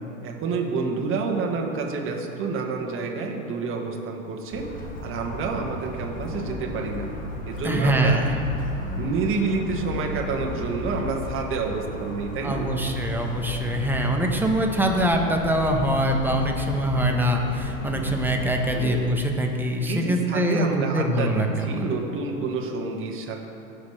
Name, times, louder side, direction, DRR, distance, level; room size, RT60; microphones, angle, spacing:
voice 1, 0.2-4.7 5.0-7.1 7.5-8.3 9.0-12.7 18.7-19.0 19.9-23.4, right 4 dB, 30° right, 1 dB, 1.5 m, -28 dB
Motor vehicle (road) / Siren, 4.5-19.0, left 2 dB, 20° left, 1.7 m, -34 dB
voice 2, 7.6-8.3 12.4-21.8, right 1 dB, 5° right, 2 dB, 1.0 m, -24 dB
17.0 x 6.5 x 3.3 m, 3.0 s
hypercardioid pair, 110°, 40 cm